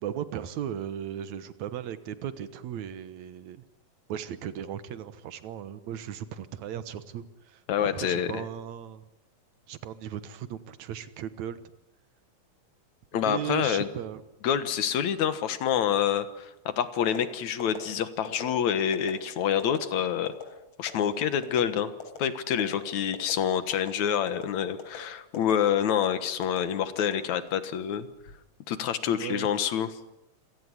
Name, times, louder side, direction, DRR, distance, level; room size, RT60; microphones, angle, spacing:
voice 1, 0.0-3.6 4.1-9.1 9.7-11.6 13.1-14.2 29.0-29.5, right 10 dB, 80° right, 13 dB, 2.5 m, -36 dB
voice 2, 7.7-8.4 13.1-13.9 14.4-20.3 20.8-21.9 22.2-28.1 28.7-29.9, left 9 dB, 80° left, 12 dB, 2.7 m, -27 dB
sound 1, 17.0-17.2 17.6-17.8 18.3-18.5 18.9-19.1 19.6-19.8 20.3-20.4 20.9-21.1 21.4-21.7 22.0-22.2 22.6-22.8 23.1-23.4 23.7-23.9 24.3-24.4 24.8-25.0 25.3-25.5 25.9-26.1 26.4-26.6 27.0-27.6 28.1-28.4, left 7 dB, 55° left, 4.8 m, -40 dB
27.0 x 17.0 x 9.9 m, 0.90 s
omnidirectional pair, 3.3 m